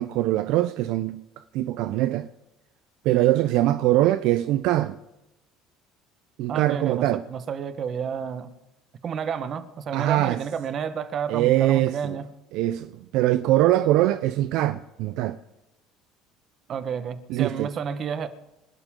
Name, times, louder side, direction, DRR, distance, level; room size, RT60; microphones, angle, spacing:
voice 1, 0.0-2.3 3.0-5.0 6.4-7.2 9.9-10.4 11.3-12.2 12.5-15.4 17.3-17.7, right 15 dB, 70° right, 0.5 m, -23 dB
voice 2, 6.5-8.5 9.0-12.3 16.7-18.3, right 7 dB, 40° right, 1.2 m, -30 dB
27.5 x 12.0 x 3.8 m
cardioid pair, 125°, 0 cm